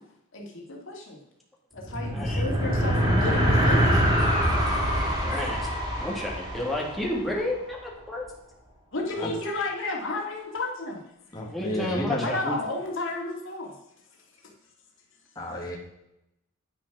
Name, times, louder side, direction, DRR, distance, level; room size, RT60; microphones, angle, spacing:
voice 1, 0.3-1.2 1.7-4.4 8.9-11.0 12.2-13.7 14.4-14.5, left 2 dB, 65° left, 0 dB, 2.3 m, -32 dB
sound 1, 1.8-7.5, equal, 20° right, 3.0 m, -24 dB
voice 2, 2.0-2.4 4.6-5.7 6.0-8.2 9.2-9.3 11.5-12.4, left 1 dB, ahead, -4 dB, 2.0 m, -31 dB
voice 3, 11.3-12.5 15.3-15.8, left 1 dB, 20° left, -3 dB, 1.7 m, -32 dB
10.5 x 6.0 x 6.1 m, 0.84 s
head